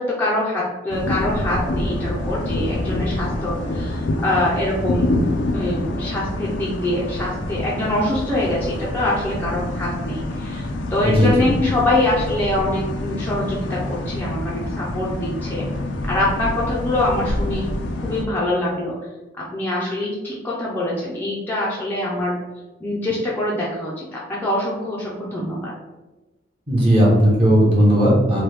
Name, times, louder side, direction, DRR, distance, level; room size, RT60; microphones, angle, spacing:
voice 1, 0.0-5.2 5.5-15.6 16.1-17.7 18.0-18.9 19.4-22.3 22.8-25.7, left 1 dB, 10° left, -6 dB, 0.4 m, -24 dB
sound 1, 0.9-18.2, left 1 dB, 80° left, 0.4 m, -26 dB
voice 2, 11.0-11.5 26.7-28.4, equal, 30° right, -6 dB, 0.8 m, -16 dB
3.0 x 2.2 x 3.2 m, 1.1 s
head